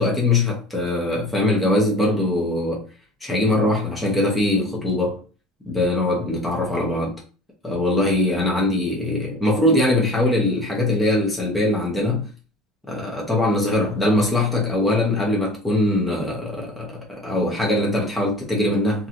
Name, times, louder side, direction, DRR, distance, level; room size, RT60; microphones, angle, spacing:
voice 1, 0.0-2.8 3.2-5.2 5.7-7.2 7.6-12.3 12.9-19.1, left 1 dB, 5° left, 0.9 m, -21 dB
2.9 x 2.7 x 2.6 m
cardioid pair, 160°, 0 cm